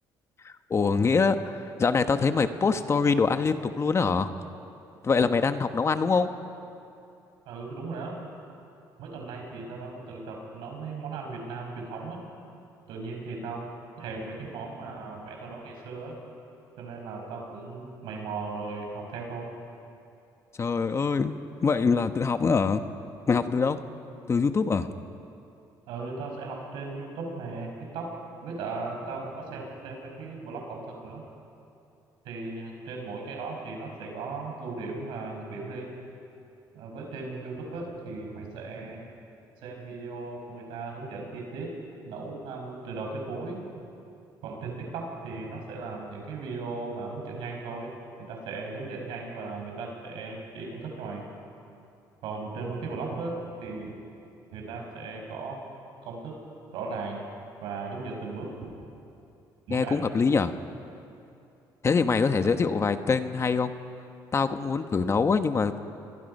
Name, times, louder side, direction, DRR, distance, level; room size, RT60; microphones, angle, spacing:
voice 1, 0.4-4.3 5.0-6.3 20.6-22.8 23.3-23.8 24.3-24.9 59.7-60.5 61.8-63.7 64.3-65.7, left 5 dB, 35° left, 9 dB, 1.1 m, -24 dB
voice 2, 7.5-8.2 9.0-12.2 12.9-13.7 14.0-16.2 16.8-19.5 25.9-28.1 28.4-31.2 32.2-35.9 36.7-39.1 39.6-41.7 42.1-43.6 44.4-47.9 48.2-51.2 52.2-54.0 54.5-55.6 56.0-56.3 56.7-57.2 57.6-58.7 59.7-60.0, right 3 dB, 85° right, 1 dB, 5.6 m, -37 dB
29.0 x 22.5 x 5.5 m, 2.7 s
cardioid pair, 95°, 8 cm